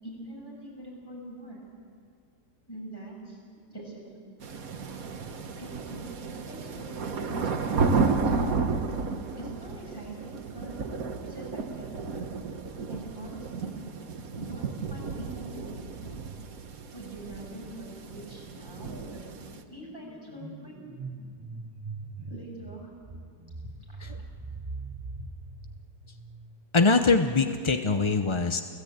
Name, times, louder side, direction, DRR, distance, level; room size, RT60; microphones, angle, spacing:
voice 1, 0.0-1.6 2.7-3.4 3.7-4.4 5.6-8.6 9.4-10.8 11.2-12.0 12.8-13.8 14.4-16.0 16.9-19.2 19.7-20.8 22.2-23.2 23.9-24.2, right 1 dB, 15° left, -3 dB, 7.8 m, -44 dB
sound 1, 4.4-19.6, right 4 dB, 55° right, 1.7 m, -32 dB
sound 2, 18.5-26.7, right 3 dB, 15° right, 5.1 m, -42 dB
voice 2, 26.7-28.6, left 4 dB, 35° left, 7 dB, 0.4 m, -23 dB
29.5 x 17.0 x 8.9 m, 2.2 s
omnidirectional pair, 1.8 m